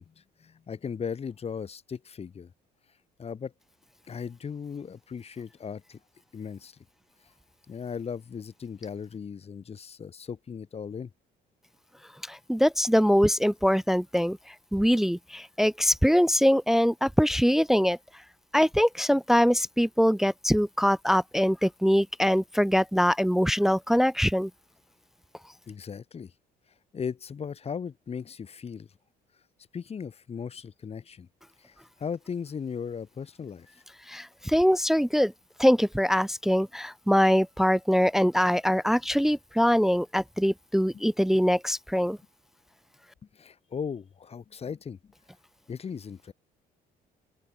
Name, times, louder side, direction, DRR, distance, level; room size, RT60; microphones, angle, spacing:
voice 1, 0.0-2.5 3.2-3.5 4.1-6.0 6.3-6.8 7.7-11.1 25.7-26.3 26.9-28.9 29.7-31.3 31.6-33.7 40.9-41.0 43.3-45.1 45.7-46.3, left 6 dB, 35° left, 7.6 m, -37 dB
voice 2, 12.3-18.0 18.5-24.5 34.1-35.3 35.6-42.2, equal, ahead, 0.5 m, -23 dB
open air
cardioid pair, 110°, 17 cm